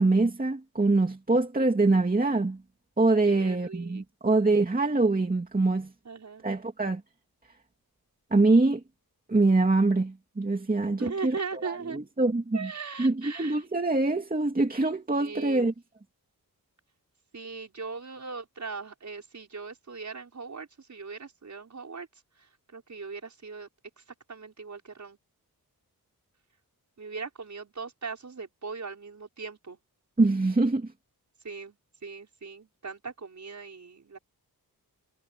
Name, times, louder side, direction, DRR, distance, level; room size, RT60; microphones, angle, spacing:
voice 1, 0.0-2.6 3.0-5.9 6.4-7.0 8.3-8.8 9.3-11.3 11.6-12.7 13.0-15.7 30.2-30.9, right 2 dB, 25° right, 2.6 m, -24 dB
voice 2, 3.3-4.4 6.0-6.5 11.0-12.0 12.5-13.6 15.2-15.7 17.3-22.1 22.4-23.7 24.0-24.1 24.3-25.2 27.0-29.8 31.4-31.8 32.0-34.2, right 4 dB, 50° right, 5.4 m, -39 dB
wide cardioid pair, 165°, 37 cm